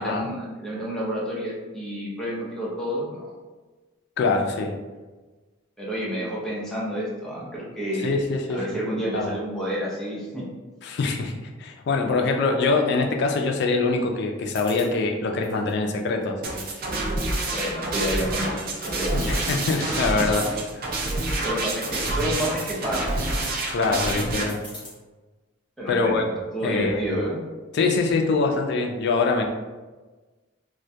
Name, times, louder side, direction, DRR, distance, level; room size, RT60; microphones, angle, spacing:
voice 1, 0.0-3.3 5.8-8.1 8.5-10.4 17.5-19.5 21.4-23.5 25.8-26.3 26.5-27.4, equal, 5° left, -7 dB, 0.5 m, -30 dB
voice 2, 4.2-4.7 8.0-8.6 9.1-9.3 10.8-11.3 11.6-16.6 19.1-20.5 23.7-24.6 25.9-26.2 26.6-27.2 27.7-29.4, left 3 dB, 55° left, 3 dB, 0.3 m, -24 dB
sound 1, 14.5-14.9 15.4-16.2 16.6-17.4 17.9-18.4 18.7-18.8 19.1-19.8 20.4-20.7 21.3-21.4 21.6-22.3 22.8-23.3 24.5-24.9, left 1 dB, 25° left, 0.9 m, -42 dB
sound 2, 16.4-24.4, right 2 dB, 45° right, 0.4 m, -27 dB
2.2 x 2.1 x 2.6 m, 1.3 s
head